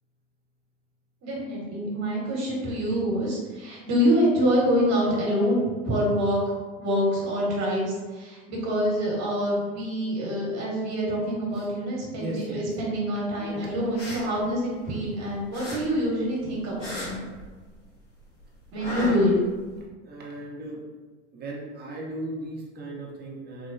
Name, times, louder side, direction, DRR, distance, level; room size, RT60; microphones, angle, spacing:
voice 1, 1.2-6.4 6.8-17.2 18.7-19.3, equal, 45° right, -4 dB, 1.4 m, -26 dB
voice 2, 12.1-12.7 13.4-13.7 19.0-19.1 20.0-20.8 21.3-23.7, right 1 dB, 25° right, -3 dB, 0.9 m, -37 dB
sound 1, 13.8-15.2 15.5-17.9 18.2-19.8, left 1 dB, 80° left, 1.2 m, -37 dB
3.2 x 2.9 x 2.6 m, 1.4 s
hypercardioid pair, 80°, 36 cm